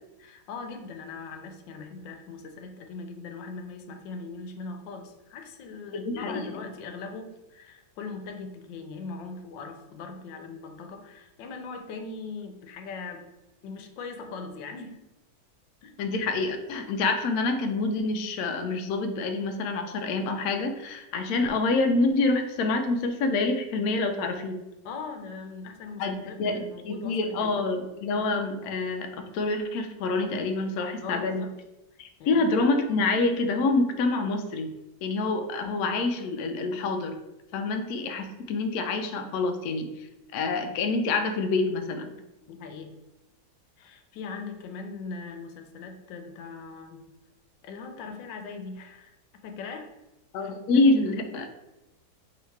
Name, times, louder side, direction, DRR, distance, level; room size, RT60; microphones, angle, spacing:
voice 1, 0.2-13.2 13.6-15.0 15.8-15.9 24.8-27.7 31.0-31.5 32.2-32.5 42.5-42.9 43.8-47.0 47.6-49.2 49.4-49.9 50.4-50.8, left 4 dB, 90° left, 5 dB, 1.3 m, -40 dB
voice 2, 5.9-6.6 16.0-24.6 26.0-29.1 29.3-31.4 32.0-34.7 35.0-37.1 37.5-39.9 40.3-42.1 50.3-51.5, left 3 dB, 70° left, 5 dB, 0.9 m, -27 dB
3.1 x 2.9 x 4.4 m, 0.98 s
omnidirectional pair, 1.9 m